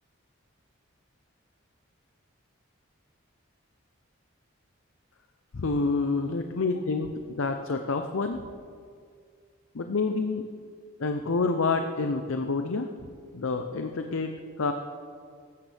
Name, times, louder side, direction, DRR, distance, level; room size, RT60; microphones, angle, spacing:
voice 1, 5.5-8.4 9.7-10.4 11.0-12.9 13.3-14.7, left 3 dB, 75° left, 6 dB, 0.6 m, -28 dB
15.5 x 11.5 x 3.4 m, 2.1 s
head